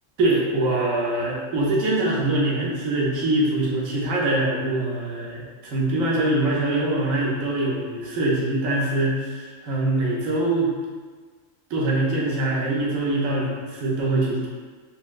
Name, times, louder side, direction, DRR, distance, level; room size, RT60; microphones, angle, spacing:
voice 1, 0.2-10.7 11.7-14.5, right 2 dB, 90° right, -5 dB, 1.1 m, -23 dB
4.2 x 2.0 x 2.3 m, 1.5 s
omnidirectional pair, 1.4 m